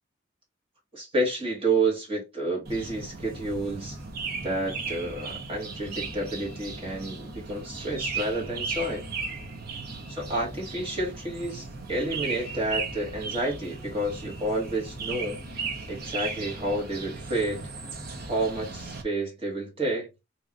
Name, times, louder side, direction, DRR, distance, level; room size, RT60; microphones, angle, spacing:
voice 1, 0.9-4.0 4.4-9.0 10.1-15.4 15.9-17.7 18.2-20.1, right 2 dB, 30° right, 1.6 m, -30 dB
sound 1, 2.6-19.0, right 4 dB, 50° right, 1.0 m, -36 dB
3.7 x 3.0 x 2.5 m
head